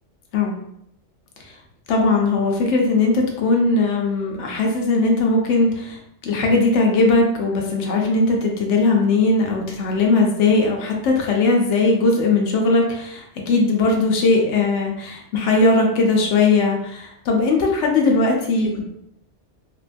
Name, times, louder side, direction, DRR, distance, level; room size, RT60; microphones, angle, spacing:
voice 1, 1.9-18.8, left 3 dB, 90° left, 0 dB, 0.9 m, -19 dB
3.3 x 2.2 x 2.5 m, 0.77 s
omnidirectional pair, 1.2 m